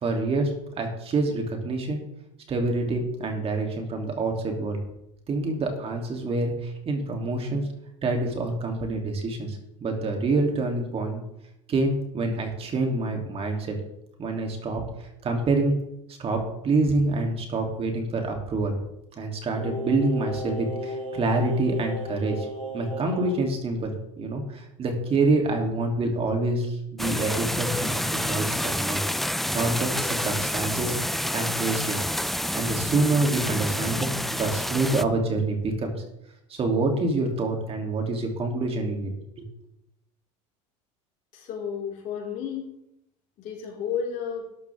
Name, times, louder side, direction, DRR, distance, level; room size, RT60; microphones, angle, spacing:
voice 1, 0.0-2.0 2.5-4.8 5.3-7.7 8.0-11.2 11.7-13.8 14.2-15.8 16.2-18.7 19.2-22.5 22.7-29.0 29.5-30.9 31.3-32.0 32.5-36.0 36.5-39.1 39.4-39.5, right 2 dB, 35° right, 2 dB, 2.9 m, -27 dB
Singing, 19.6-23.4 23.7-23.8, equal, 80° right, 3.7 m, -34 dB
sound 1, 27.0-35.0, equal, ahead, 0.5 m, -28 dB
voice 2, 41.3-42.7 43.4-44.4, left 7 dB, 55° left, -1 dB, 4.7 m, -32 dB
12.5 x 11.5 x 3.6 m, 0.82 s
supercardioid pair, 95°, 17 cm